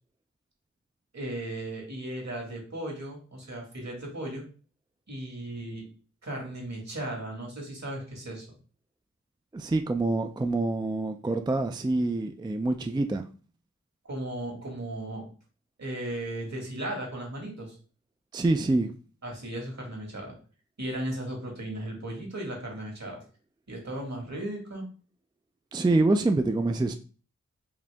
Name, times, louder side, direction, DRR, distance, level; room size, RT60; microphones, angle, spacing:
voice 1, 1.1-4.4 5.1-5.8 6.2-8.5 14.1-15.3 15.8-17.8 19.2-20.3 20.8-23.2 23.7-24.9, right 1 dB, 60° right, 0 dB, 1.8 m, -36 dB
voice 2, 9.5-13.2 18.3-18.9 25.7-26.9, right 2 dB, 15° right, 7 dB, 0.3 m, -26 dB
4.9 x 2.7 x 3.4 m, 0.38 s
wide cardioid pair, 70°, 31 cm